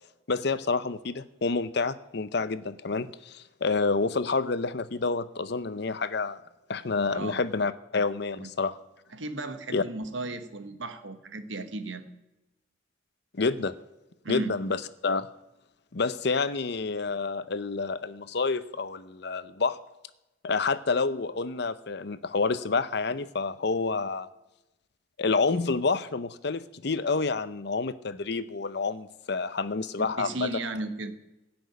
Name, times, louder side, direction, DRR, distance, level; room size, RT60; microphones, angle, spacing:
voice 1, 0.3-6.4 6.7-8.7 9.7-9.8 13.3-13.7 14.3-15.3 15.9-19.8 20.4-24.3 25.2-30.5, left 4 dB, 60° left, 14 dB, 0.7 m, -28 dB
voice 2, 7.1-7.4 8.4-8.5 9.1-12.0 14.2-14.6 30.2-31.1, right 2 dB, 80° right, 8 dB, 1.4 m, -35 dB
16.0 x 6.2 x 9.3 m, 0.96 s
head